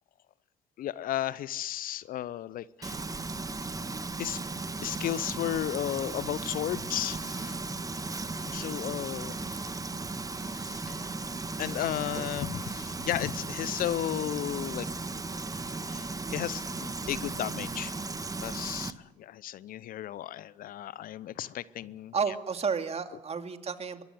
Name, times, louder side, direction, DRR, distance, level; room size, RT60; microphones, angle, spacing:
voice 1, 0.8-3.0 4.2-4.4 4.8-7.6 8.4-9.7 10.4-11.1 11.6-14.9 15.9-17.9 18.4-22.1, left 12 dB, 55° left, 20 dB, 0.8 m, -34 dB
Frying (food), 2.8-18.9, right 3 dB, 20° right, 1.5 m, -36 dB
voice 2, 22.1-24.0, right 5 dB, 40° right, 7 dB, 2.5 m, -32 dB
23.0 x 21.5 x 7.9 m, 0.98 s
hypercardioid pair, 50°, 17 cm